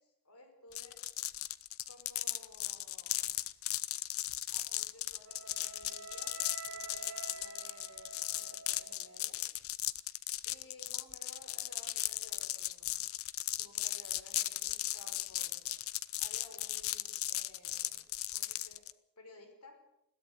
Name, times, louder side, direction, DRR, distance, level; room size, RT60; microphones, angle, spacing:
voice 1, 0.2-1.0 1.9-3.4 4.5-6.4 6.7-9.4 10.4-13.1 13.6-15.7 16.2-18.0 18.3-18.8 19.2-19.8, left 2 dB, 85° left, 6 dB, 5.5 m, -57 dB
sound 1, 0.7-18.9, left 15 dB, 65° left, 0.8 m, -37 dB
Wind instrument woodwind instrument, 5.2-9.3, right 5 dB, 65° right, 2.9 m, -49 dB
22.0 x 16.5 x 8.3 m, 0.86 s
head